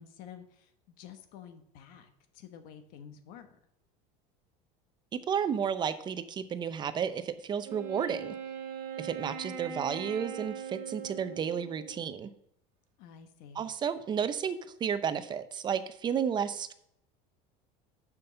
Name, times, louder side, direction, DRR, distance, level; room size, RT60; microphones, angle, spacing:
voice 1, 0.0-3.6 13.0-13.7, left 8 dB, 65° left, 8 dB, 1.2 m, -50 dB
voice 2, 5.1-8.3 9.0-12.3 13.6-16.7, right 7 dB, 30° right, 12 dB, 0.6 m, -32 dB
Wind instrument woodwind instrument, 7.6-12.2, right 7 dB, 70° right, 1.3 m, -41 dB
6.7 x 5.4 x 6.6 m, 0.73 s
supercardioid pair, 130°, 16 cm